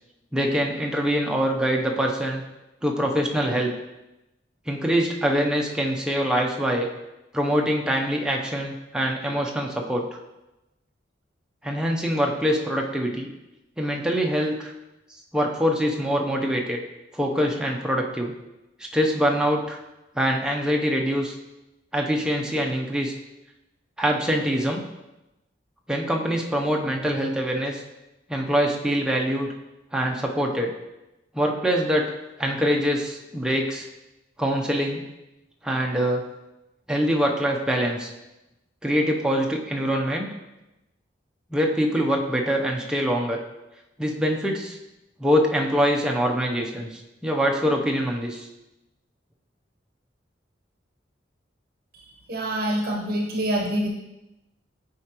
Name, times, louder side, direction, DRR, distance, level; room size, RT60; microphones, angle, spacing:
voice 1, 0.3-2.4 2.8-3.7 4.7-6.9 7.3-10.0 11.6-13.3 13.8-14.7 15.3-16.8 17.1-18.3 18.9-19.8 20.2-21.3 21.9-23.1 24.0-24.8 25.9-27.8 28.3-29.5 29.9-30.7 31.3-32.0 32.4-33.9 34.4-35.0 35.6-36.2 36.9-38.1 38.8-40.3 41.5-43.4 44.0-44.8 45.2-48.5, equal, 5° right, 0 dB, 0.6 m, -24 dB
voice 2, 52.3-53.9, right 1 dB, 50° right, 0 dB, 0.9 m, -25 dB
7.9 x 4.9 x 2.9 m, 0.97 s
head